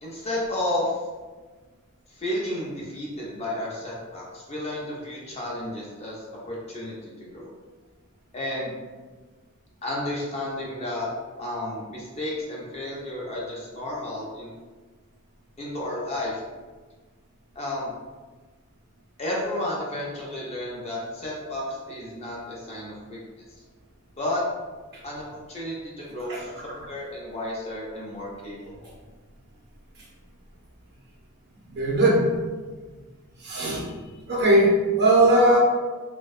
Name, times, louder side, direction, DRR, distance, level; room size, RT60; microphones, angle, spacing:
voice 1, 0.0-1.0 2.1-7.5 8.3-8.8 9.8-11.1 11.4-14.5 15.6-16.4 17.6-17.9 19.2-23.4 24.2-24.4 25.0-28.9, left 1 dB, 30° left, -5 dB, 0.4 m, -32 dB
voice 2, 31.7-32.3 33.4-33.8 34.3-35.6, right 1 dB, 45° right, -4 dB, 0.6 m, -19 dB
2.6 x 2.1 x 2.3 m, 1.3 s
head